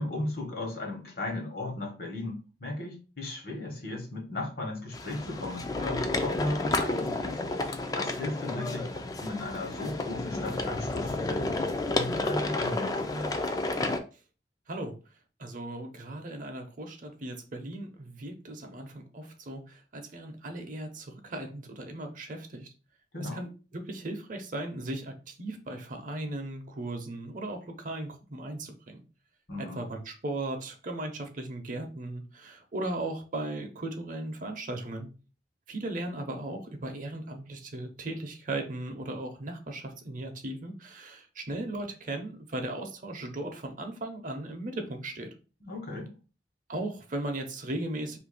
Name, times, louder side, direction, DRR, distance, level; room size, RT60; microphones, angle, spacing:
voice 1, 0.0-7.5 7.9-8.9 9.2-11.7 11.9-13.4 23.1-23.4 29.5-29.8 45.6-46.1, left 2 dB, 60° left, 1.1 m, -36 dB
sound 1, 4.9-14.0, left 2 dB, 20° left, 0.3 m, -31 dB
voice 2, 15.4-22.7 23.2-29.0 29.6-35.1 35.7-45.3 46.7-48.2, right 2 dB, 50° right, 0.7 m, -37 dB
2.7 x 2.6 x 3.9 m
head